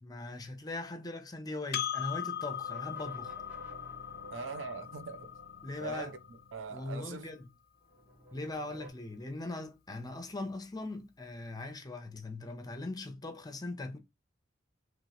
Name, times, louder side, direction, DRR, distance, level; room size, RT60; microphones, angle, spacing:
voice 1, 0.0-3.3 5.6-6.1 6.7-7.5 8.3-14.0, left 2 dB, 20° left, 0.8 m, -40 dB
Percussion, 1.7-6.5, left 10 dB, 55° left, 0.6 m, -39 dB
sound 1, 2.4-7.3 7.8-8.9, right 1 dB, 10° right, 1.1 m, -53 dB
voice 2, 4.3-5.3 5.8-6.2 6.5-7.3, right 4 dB, 80° right, 0.6 m, -41 dB
3.2 x 3.1 x 4.1 m
head